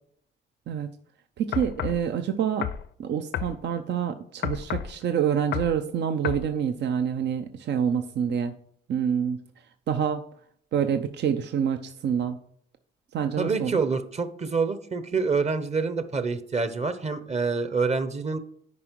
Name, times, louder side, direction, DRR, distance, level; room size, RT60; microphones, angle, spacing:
voice 1, 1.4-2.7 3.0-8.5 8.9-9.4 9.9-10.2 10.7-12.4 13.1-13.8, right 8 dB, 60° right, 8 dB, 0.7 m, -27 dB
sound 1, 1.5-2.0 2.6-2.9 3.3-3.6 4.4-4.9 5.5-5.8 6.2-6.5, left 10 dB, 65° left, 0.6 m, -30 dB
voice 2, 13.4-18.4, right 4 dB, 35° right, 11 dB, 1.0 m, -27 dB
9.6 x 5.1 x 4.6 m, 0.65 s
cardioid pair, 90°, 20 cm